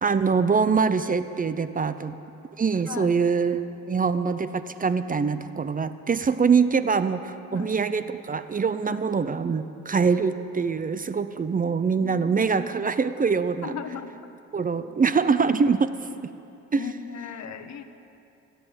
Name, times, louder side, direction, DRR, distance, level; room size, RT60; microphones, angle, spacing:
voice 1, 0.0-2.2 2.6-13.7 14.5-15.9 16.7-16.9, right 5 dB, 30° right, 12 dB, 0.6 m, -24 dB
voice 2, 12.0-12.3 13.6-14.1 16.7-17.8, left 8 dB, 60° left, 9 dB, 1.2 m, -37 dB
17.5 x 9.6 x 8.0 m, 2.8 s
cardioid pair, 90°, 30 cm